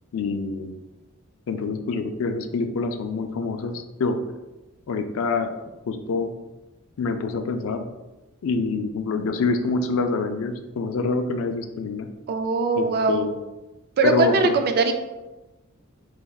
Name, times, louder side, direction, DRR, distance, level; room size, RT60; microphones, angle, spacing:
voice 1, 0.1-0.7 1.5-4.2 4.9-5.5 5.9-6.3 7.0-7.9 8.4-12.1 12.8-13.3 14.0-14.5, left 4 dB, 65° left, 7 dB, 0.4 m, -26 dB
voice 2, 12.3-13.3 14.0-14.9, right 3 dB, 45° right, 7 dB, 0.3 m, -21 dB
4.0 x 3.4 x 2.3 m, 1.1 s
head